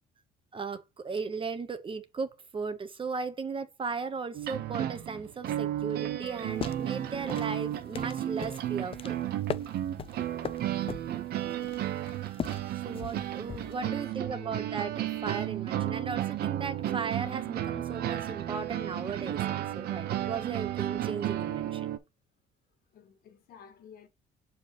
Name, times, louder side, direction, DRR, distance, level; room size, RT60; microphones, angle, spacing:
voice 1, 0.5-9.4 12.8-21.9, right 5 dB, 30° right, 1.2 m, -36 dB
sound 1, 4.3-22.0, right 12 dB, 65° right, 1.1 m, -33 dB
sound 2, 6.4-13.9, left 7 dB, 35° left, 0.6 m, -40 dB
voice 2, 13.8-14.7 22.9-24.1, left 8 dB, 65° left, 1.8 m, -51 dB
7.1 x 4.7 x 3.1 m
cardioid pair, 110°, 17 cm